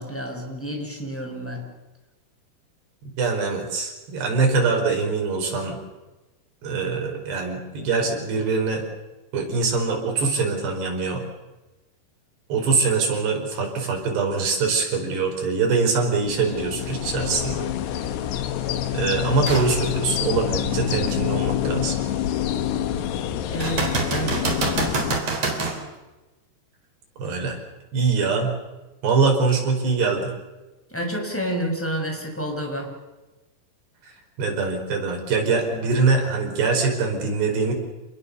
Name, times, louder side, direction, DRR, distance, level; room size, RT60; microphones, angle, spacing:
voice 1, 0.0-1.6 23.5-24.4 30.9-32.9, equal, 5° left, 2 dB, 5.5 m, -29 dB
voice 2, 3.2-5.8 6.6-8.8 9.3-11.2 12.5-17.7 18.9-22.0 27.2-27.6 27.9-28.5 29.0-30.3 34.0-34.1 34.4-37.7, right 4 dB, 70° right, 2 dB, 7.1 m, -23 dB
sound 1, 16.2-25.2, left 11 dB, 75° left, 3.4 m, -27 dB
sound 2, 19.5-19.7 20.3-20.4 23.6-25.8 29.5-29.6, right 3 dB, 35° right, 4.8 m, -25 dB
28.5 x 21.0 x 7.0 m, 1.1 s
omnidirectional pair, 5.1 m